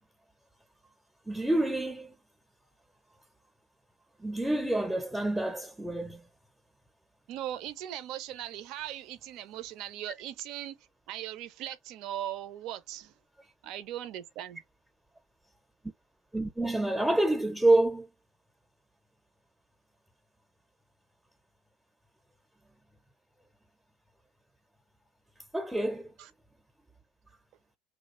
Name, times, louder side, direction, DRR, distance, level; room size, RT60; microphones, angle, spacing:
voice 1, 1.3-2.2 4.2-6.2 16.3-18.1 25.5-26.1, right 2 dB, 5° right, 0.7 m, -27 dB
voice 2, 7.3-10.8 11.1-13.1 13.6-14.6 26.2-26.3, right 12 dB, 60° right, 0.6 m, -39 dB
3.2 x 2.3 x 3.1 m
hypercardioid pair, 90°, 0 cm